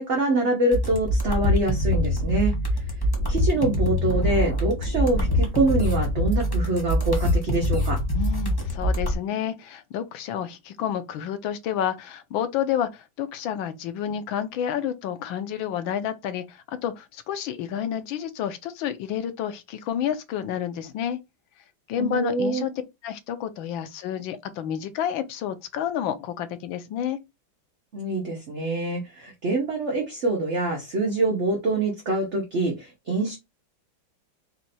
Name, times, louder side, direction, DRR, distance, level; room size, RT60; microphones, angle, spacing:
voice 1, 0.0-2.8 3.3-8.0 22.0-22.6 27.9-33.4, right 2 dB, 45° right, 1.1 m, -25 dB
sound 1, 0.7-9.1, left 1 dB, 15° left, 0.9 m, -24 dB
voice 2, 8.1-21.2 21.9-27.2, left 9 dB, 85° left, 1.5 m, -30 dB
4.2 x 2.6 x 4.2 m
omnidirectional pair, 2.1 m